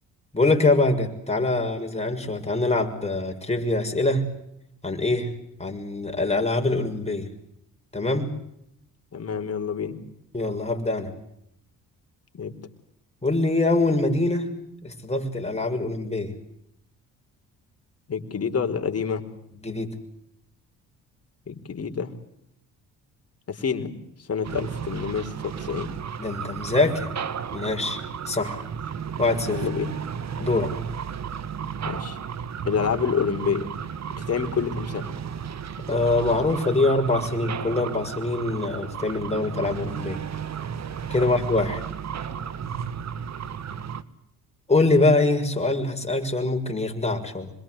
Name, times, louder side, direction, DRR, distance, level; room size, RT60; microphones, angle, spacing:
voice 1, 0.3-4.3 4.8-5.3 5.6-7.3 7.9-8.3 10.3-11.1 13.2-14.5 14.8-16.3 19.6-19.9 26.2-27.1 27.5-28.0 28.3-28.6 29.2-29.7 30.4-30.7 35.9-40.2 41.1-41.8 44.7-47.5, left 2 dB, 20° left, 3 dB, 6.4 m, -24 dB
voice 2, 9.1-10.0 12.3-12.5 18.1-19.2 21.5-22.1 23.5-25.9 29.5-30.0 31.8-32.2 32.6-33.7 34.2-35.1 41.2-41.3, left 6 dB, 45° left, 7 dB, 4.3 m, -28 dB
sound 1, 24.4-44.0, right 7 dB, 50° right, 1.8 m, -34 dB
26.5 x 22.5 x 8.0 m, 0.79 s
supercardioid pair, 75°, 35 cm